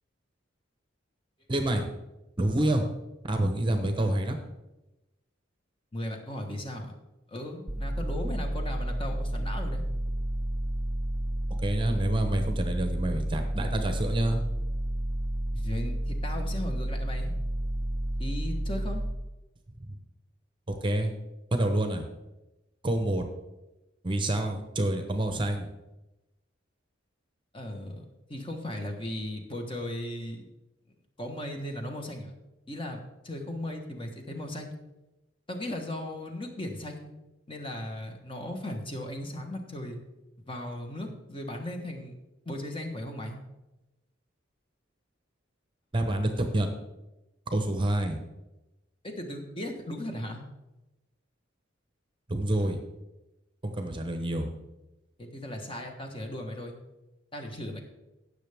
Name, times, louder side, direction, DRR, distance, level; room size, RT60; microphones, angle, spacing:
voice 1, 1.5-1.8 2.4-2.9 3.3-4.4 11.6-14.4 19.8-19.9 20.7-21.1 21.5-22.1 22.8-23.2 24.0-25.7 45.9-46.7 47.5-48.2 52.3-52.8 53.6-54.5, right 1 dB, 25° right, 6 dB, 0.9 m, -27 dB
voice 2, 5.9-6.9 7.3-9.8 15.5-17.3 18.2-19.0 27.5-30.4 31.2-32.3 32.7-34.8 35.5-37.1 37.5-40.0 40.5-42.1 42.4-43.4 49.0-50.4 55.2-56.7 57.3-57.8, left 1 dB, 25° left, 3 dB, 1.3 m, -37 dB
sound 1, 7.7-19.1, right 1 dB, 10° right, 0.5 m, -31 dB
16.5 x 6.6 x 3.5 m, 0.99 s
head